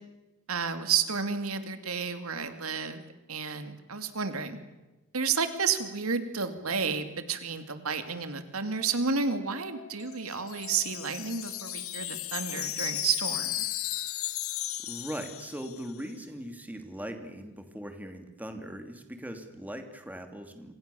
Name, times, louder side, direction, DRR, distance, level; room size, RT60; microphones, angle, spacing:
voice 1, 0.5-3.0 3.3-4.6 5.1-13.6, right 5 dB, 80° right, 9 dB, 2.5 m, -31 dB
sound 1, 9.5-12.3, left 7 dB, 55° left, 5.5 m, -54 dB
Wind chime, 10.0-16.0, left 14 dB, 75° left, 1.4 m, -35 dB
voice 2, 14.8-20.7, equal, 5° right, 6 dB, 2.8 m, -40 dB
27.0 x 27.0 x 7.1 m, 1.1 s
head